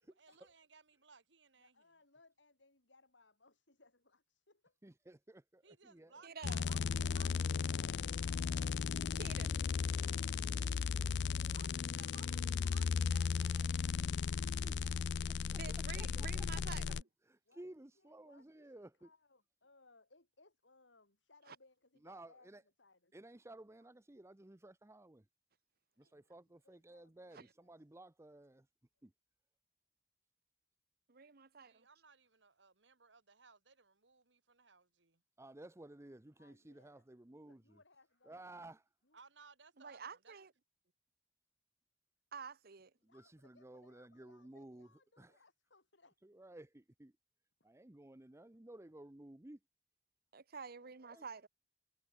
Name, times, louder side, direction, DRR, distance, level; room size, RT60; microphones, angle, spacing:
voice 1, 0.0-1.9 5.6-7.3 11.5-15.1 31.6-35.2 39.1-40.3, right 4 dB, 80° right, 2.8 m, -62 dB
voice 2, 1.6-4.8 11.9-12.1 17.5-17.6 18.0-22.5 22.8-23.2 26.0-26.6 26.9-27.8 36.4-38.4 39.0-39.2 43.0-46.2 50.7-51.3, left 3 dB, 90° left, 5.3 m, -68 dB
voice 3, 4.8-6.1 13.8-14.8 15.2-16.8 17.3-19.1 22.0-22.6 23.1-25.3 26.0-28.7 29.0-29.1 35.4-37.8 38.2-38.9 43.0-44.9 45.2-45.4 46.2-47.1 47.6-49.6 51.1-51.3, right 1 dB, 15° right, 0.7 m, -56 dB
voice 4, 6.2-6.6 9.2-9.5 15.6-17.0 21.5-21.6 27.3-27.5 31.1-31.8 39.8-40.5 42.3-42.9 50.3-51.5, right 5 dB, 55° right, 1.0 m, -49 dB
sound 1, 6.4-17.0, left 6 dB, 65° left, 0.4 m, -36 dB
head